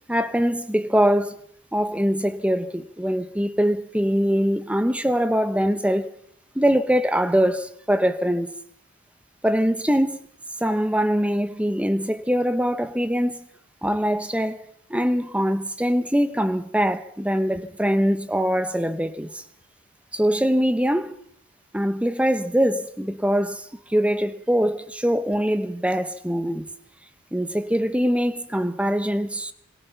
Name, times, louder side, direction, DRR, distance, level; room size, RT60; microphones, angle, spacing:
voice 1, 0.1-1.4 1.7-6.1 6.5-8.5 9.4-10.2 10.6-13.4 13.8-14.6 14.9-19.4 20.1-21.2 21.7-26.7 27.3-29.5, equal, 5° right, 0.9 m, -23 dB
26.5 x 22.5 x 5.7 m
head